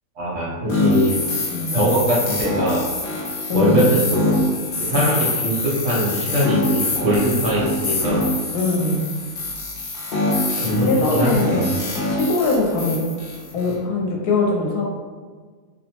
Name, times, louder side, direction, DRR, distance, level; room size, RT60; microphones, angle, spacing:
voice 1, 0.2-1.2 1.7-2.8 3.5-4.4 4.8-8.3 10.6-11.8, equal, 60° right, -6 dB, 0.9 m, -21 dB
sound 1, 0.7-13.7, left 2 dB, 60° left, 0.7 m, -24 dB
voice 2, 3.5-4.0 4.9-5.1 8.5-9.1 10.6-11.7 12.1-13.0 13.5-14.8, left 2 dB, 85° left, -1 dB, 1.1 m, -22 dB
2.7 x 2.1 x 2.8 m, 1.5 s
omnidirectional pair, 1.6 m